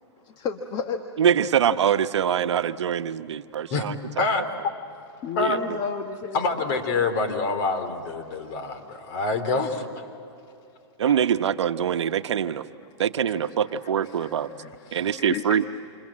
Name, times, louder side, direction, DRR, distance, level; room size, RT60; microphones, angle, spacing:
voice 1, 0.2-1.0 5.2-6.6 6.9-7.0 8.9-9.0 12.8-12.9 14.0-15.6, left 6 dB, 30° left, 6 dB, 1.3 m, -33 dB
voice 2, 1.2-4.2 5.4-5.6 11.0-12.6 13.0-14.5 14.9-15.6, right 8 dB, 80° right, 9 dB, 1.0 m, -24 dB
voice 3, 6.3-9.8, left 3 dB, 45° left, 6 dB, 3.6 m, -26 dB
28.5 x 28.0 x 7.6 m, 2.6 s
hypercardioid pair, 140°, 15 cm